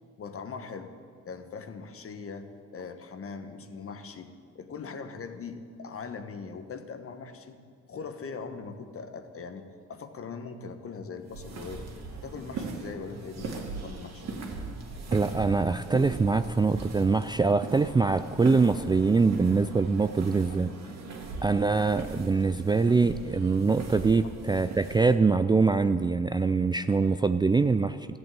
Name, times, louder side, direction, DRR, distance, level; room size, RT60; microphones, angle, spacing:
voice 1, 0.2-0.9 1.2-7.6 7.9-11.9 12.2-14.4 27.6-27.7, left 5 dB, 50° left, 8 dB, 1.3 m, -41 dB
sound 1, 11.2-25.2, right 3 dB, 60° right, 2.1 m, -39 dB
voice 2, 15.1-20.7 21.4-28.1, right 4 dB, 15° right, 11 dB, 0.3 m, -24 dB
13.5 x 8.3 x 9.0 m, 2.2 s
cardioid pair, 90°, 30 cm